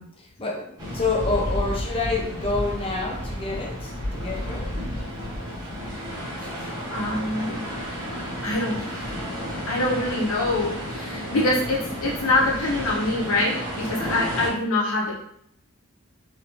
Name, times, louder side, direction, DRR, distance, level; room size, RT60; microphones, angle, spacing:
voice 1, 0.2-4.8 6.4-6.7, left 3 dB, 25° left, 0 dB, 0.6 m, -28 dB
sound 1, 0.8-14.5, equal, 20° right, 1.2 m, -32 dB
voice 2, 6.9-7.6 8.4-9.1 9.7-15.2, left 2 dB, 80° left, -4 dB, 1.0 m, -25 dB
3.0 x 2.7 x 3.1 m, 0.72 s
head